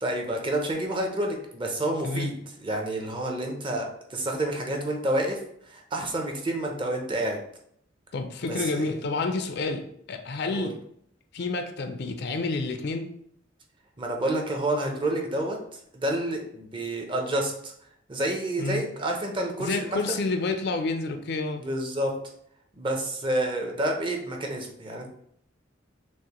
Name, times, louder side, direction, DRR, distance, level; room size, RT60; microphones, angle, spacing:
voice 1, 0.0-7.4 8.4-8.9 10.5-10.7 14.0-17.7 18.1-20.0 21.5-22.1 22.8-25.1, right 1 dB, 25° right, 1 dB, 0.6 m, -29 dB
voice 2, 8.1-10.8 11.3-13.1 18.6-18.8 19.6-21.6, left 3 dB, 55° left, 6 dB, 0.4 m, -29 dB
6.2 x 2.1 x 2.9 m, 0.70 s
head